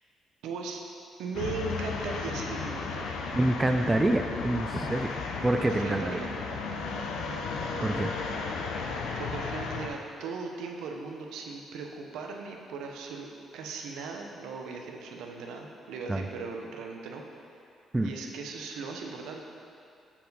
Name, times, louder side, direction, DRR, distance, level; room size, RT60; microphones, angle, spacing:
voice 1, 0.4-0.8 1.2-3.2 5.3-6.3 9.2-17.6 18.0-19.5, right 4 dB, 90° right, 2 dB, 0.6 m, -38 dB
sound 1, 1.3-9.9, left 4 dB, 85° left, 0.5 m, -34 dB
voice 2, 3.3-5.1 5.4-6.2 7.8-8.1 16.1-16.2 17.9-18.1, right 1 dB, 15° right, 5 dB, 0.4 m, -26 dB
7.2 x 4.5 x 4.0 m, 2.5 s
cardioid pair, 90°, 0 cm